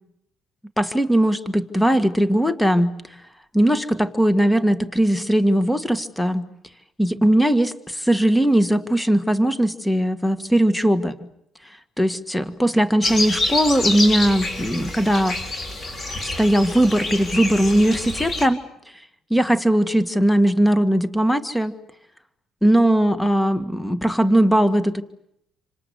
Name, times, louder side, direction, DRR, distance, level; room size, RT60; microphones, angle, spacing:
voice 1, 0.8-2.9 3.5-6.4 7.0-11.1 12.0-15.4 16.2-18.6 19.3-21.7 22.6-25.0, right 1 dB, 5° left, 12 dB, 1.7 m, -19 dB
sound 1, 13.0-18.4, left 2 dB, 35° left, 4.8 m, -27 dB
28.0 x 25.5 x 8.1 m, 0.77 s
cardioid pair, 105°, 0 cm